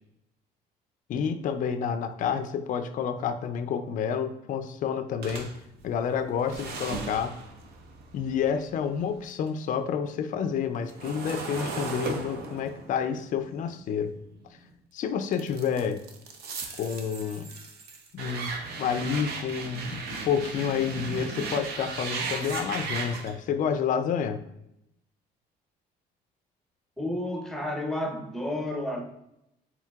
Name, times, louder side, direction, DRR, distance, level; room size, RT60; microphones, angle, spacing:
voice 1, 1.1-5.5 5.8-7.3 8.1-14.2 14.9-16.0 16.8-17.5 18.1-18.5 18.8-24.4, left 7 dB, 50° left, 0.4 m, -29 dB
sound 1, 5.2-9.5 9.8-14.8 15.3-23.3, right 4 dB, 70° right, 0.7 m, -37 dB
voice 2, 27.0-29.0, left 1 dB, ahead, 0.7 m, -31 dB
4.4 x 3.9 x 2.3 m
cardioid pair, 110°, 17 cm